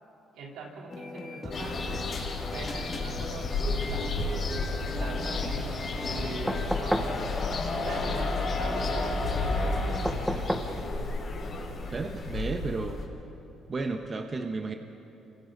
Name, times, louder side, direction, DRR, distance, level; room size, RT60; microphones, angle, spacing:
voice 1, 0.4-2.1 2.5-5.6 6.0-7.3 7.7-11.1, right 3 dB, 85° right, -2 dB, 3.8 m, -42 dB
sound 1, 0.9-6.7, left 2 dB, 25° left, 2.5 m, -40 dB
sound 2, 1.5-13.0, left 3 dB, 45° left, 5.7 m, -31 dB
sound 3, 6.5-7.2 10.0-10.8 12.4-12.5, equal, 5° right, 1.3 m, -30 dB
voice 2, 11.9-13.1 13.7-14.7, right 3 dB, 35° right, 5 dB, 1.2 m, -33 dB
29.5 x 26.0 x 4.1 m, 2.9 s
cardioid pair, 110°, 0 cm